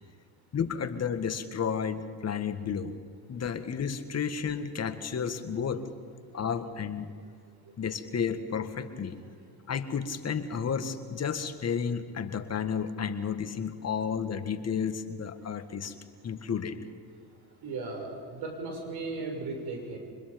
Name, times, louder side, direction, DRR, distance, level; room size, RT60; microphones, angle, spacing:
voice 1, 0.5-3.0 3.3-5.9 6.3-7.1 7.8-9.2 9.7-15.9 16.2-16.8, left 7 dB, 35° left, 9 dB, 1.8 m, -32 dB
voice 2, 17.6-20.0, right 3 dB, 60° right, 2 dB, 6.9 m, -36 dB
24.5 x 21.0 x 5.4 m, 2.2 s
supercardioid pair, 85°, 45 cm